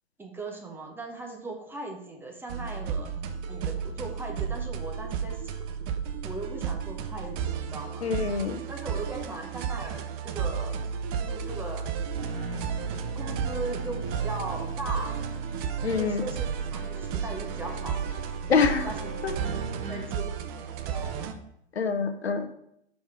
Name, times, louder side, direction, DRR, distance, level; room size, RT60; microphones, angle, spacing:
voice 1, 0.2-3.2 3.5-5.5 6.2-8.1 8.7-10.8 11.2-12.2 13.1-15.2 15.9-18.0 18.7-19.3 19.9-21.3, right 2 dB, 5° right, 1 dB, 0.8 m, -39 dB
sound 1, 2.5-21.3, right 7 dB, 25° right, 0.4 m, -33 dB
voice 2, 8.0-8.6 15.8-16.2 18.5-18.9 19.2-19.3 21.8-22.5, left 5 dB, 80° left, 8 dB, 0.8 m, -25 dB
sound 2, 12.1-20.1, right 4 dB, 60° right, 1.3 m, -39 dB
5.9 x 4.1 x 4.9 m, 0.74 s
figure-of-eight pair, 115°, 31 cm